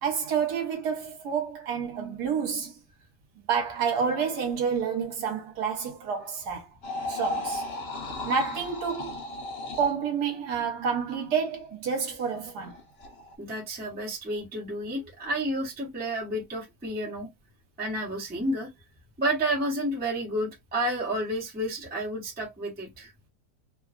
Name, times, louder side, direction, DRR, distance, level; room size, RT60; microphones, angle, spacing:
voice 1, 0.0-2.7 3.5-6.7 7.1-7.7 8.2-9.2 9.7-12.7, right 6 dB, 70° right, 1.4 m, -29 dB
sound 1, 6.8-10.0 12.6-13.4, left 2 dB, 55° left, 0.7 m, -35 dB
voice 2, 13.4-17.3 17.8-18.7 19.2-23.1, right 1 dB, 10° right, 0.7 m, -30 dB
3.0 x 2.3 x 2.3 m
omnidirectional pair, 1.8 m